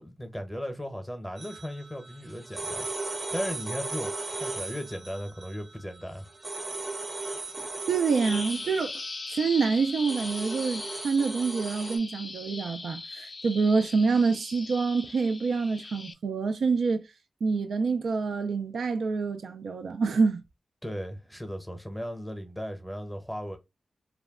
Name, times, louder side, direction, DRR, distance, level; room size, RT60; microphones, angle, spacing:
voice 1, 0.0-6.3 20.8-23.6, equal, 5° left, 0.7 m, -37 dB
sound 1, 1.4-12.0, right 2 dB, 40° right, 0.6 m, -37 dB
voice 2, 7.9-8.9 9.3-17.1 17.4-20.4, right 4 dB, 85° right, 0.3 m, -26 dB
Bird vocalization bird call bird song, 8.1-16.1, left 3 dB, 50° left, 0.4 m, -40 dB
2.3 x 2.1 x 3.4 m
cardioid pair, 60°, 0 cm